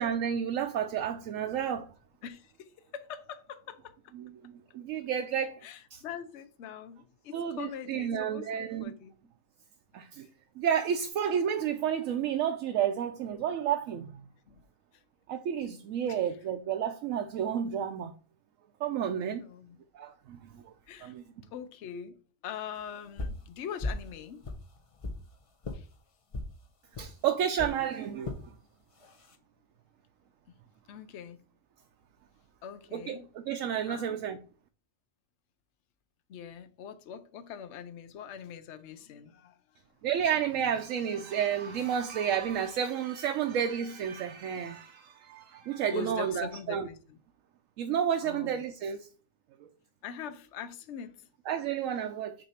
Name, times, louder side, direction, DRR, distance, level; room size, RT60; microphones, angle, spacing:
voice 1, 0.0-1.9 4.2-5.6 5.9-6.0 7.3-8.9 9.9-10.3 10.6-14.1 15.3-18.1 18.8-19.4 19.9-20.6 21.0-21.2 27.0-28.4 32.9-33.2 33.5-34.4 40.0-46.9 47.8-49.0 51.5-52.3, right 8 dB, 75° right, 1.0 m, -31 dB
voice 2, 2.2-4.0 5.6-9.1 14.5-14.6 16.1-16.3 19.4-19.8 20.9-21.1 21.5-22.2 22.4-24.4 25.7-25.9 30.5-30.6 30.9-31.4 32.6-33.3 33.9-34.2 36.3-39.8 45.9-47.2 48.2-48.6 50.0-51.3, left 8 dB, 65° left, 0.9 m, -43 dB
sound 1, 23.2-23.4 23.8-24.1 24.4-25.2 25.6-25.8 26.3-26.5 26.9-27.1 27.6-27.8 28.2-28.4 29.0-29.3, left 2 dB, 35° left, 0.6 m, -36 dB
6.4 x 2.7 x 5.6 m
omnidirectional pair, 1.4 m